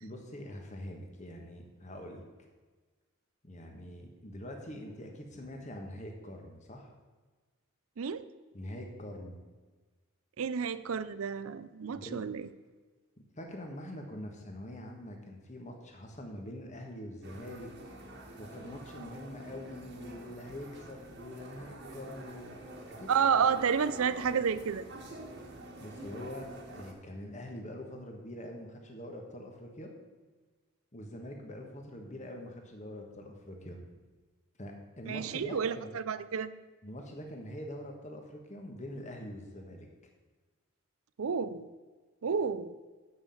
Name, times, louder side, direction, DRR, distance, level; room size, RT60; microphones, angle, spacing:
voice 1, 0.0-2.2 3.4-6.9 8.5-9.4 11.9-12.2 13.4-17.7 18.0-22.6 23.0-23.1 23.3-23.4 25.8-26.5 26.7-29.9 30.9-33.8 34.6-35.9 36.8-39.9, left 1 dB, 30° left, 3 dB, 1.4 m, -44 dB
voice 2, 8.0-8.3 10.4-12.5 23.1-24.8 35.1-36.5 41.2-41.7 42.2-42.7, right 6 dB, 70° right, 14 dB, 0.5 m, -30 dB
sound 1, 17.2-26.9, right 1 dB, 50° right, 1.5 m, -47 dB
7.5 x 6.4 x 7.6 m, 1.3 s
head